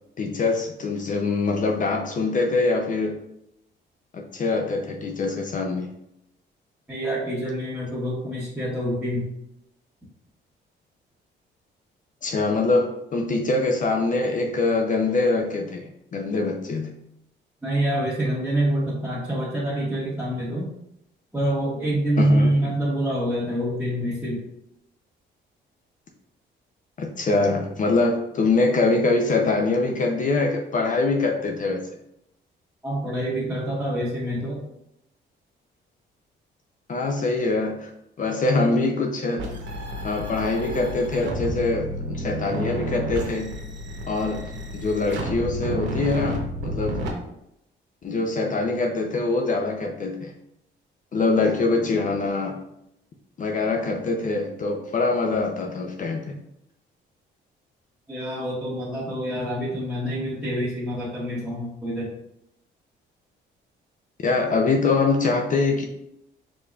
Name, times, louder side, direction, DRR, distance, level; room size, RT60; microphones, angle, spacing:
voice 1, 0.2-3.2 4.1-5.9 12.2-16.9 22.2-22.7 27.0-31.8 36.9-37.9 38.2-39.4 40.0-43.5 44.1-47.0 48.0-50.3 51.1-52.6 53.4-56.4 64.2-65.9, left 3 dB, 40° left, 3 dB, 0.6 m, -24 dB
voice 2, 6.9-9.3 17.6-20.7 21.3-24.4 32.8-34.6 58.1-62.1, right 1 dB, 5° right, -9 dB, 1.5 m, -26 dB
sound 1, 39.4-47.1, right 1 dB, 65° right, 1.0 m, -31 dB
4.7 x 3.8 x 2.4 m, 0.80 s
cardioid pair, 90°, 20 cm